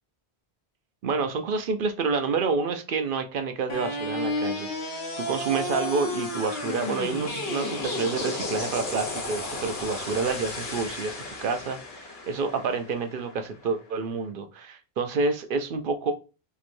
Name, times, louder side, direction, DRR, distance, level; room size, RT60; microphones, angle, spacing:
voice 1, 1.0-16.1, right 4 dB, 60° right, 7 dB, 0.7 m, -28 dB
sound 1, 3.7-13.7, left 2 dB, 70° left, 1.2 m, -33 dB
4.5 x 2.9 x 2.5 m, 0.32 s
omnidirectional pair, 1.1 m